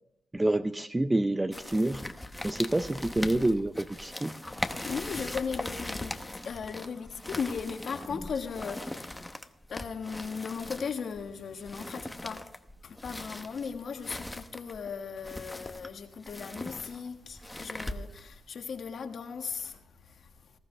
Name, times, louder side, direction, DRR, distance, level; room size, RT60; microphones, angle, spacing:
voice 1, 0.3-2.1 2.4-4.3, right 1 dB, 15° right, 0.5 m, -27 dB
sound 1, 1.5-18.4, left 1 dB, 10° left, 0.9 m, -40 dB
voice 2, 4.8-6.1 6.4-9.1 9.7-12.4 12.8-20.3, left 6 dB, 60° left, 1.5 m, -37 dB
20.0 x 14.5 x 3.3 m
cardioid pair, 90°, 0 cm